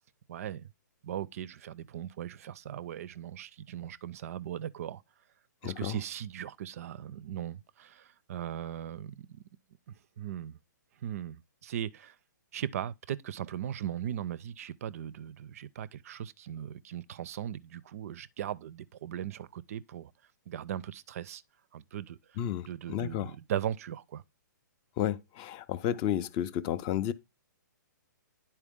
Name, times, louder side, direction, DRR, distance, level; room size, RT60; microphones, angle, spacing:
voice 1, 0.3-0.7 1.0-5.0 5.6-9.4 9.9-10.6 11.0-12.1 12.5-20.1 20.5-21.4 21.7-22.2 22.7-24.2, right 10 dB, 50° right, 0.4 m, -38 dB
voice 2, 5.6-6.0 22.4-23.3 25.0-27.1, left 11 dB, 25° left, 0.4 m, -32 dB
10.0 x 4.4 x 3.5 m
hypercardioid pair, 150°, 10 cm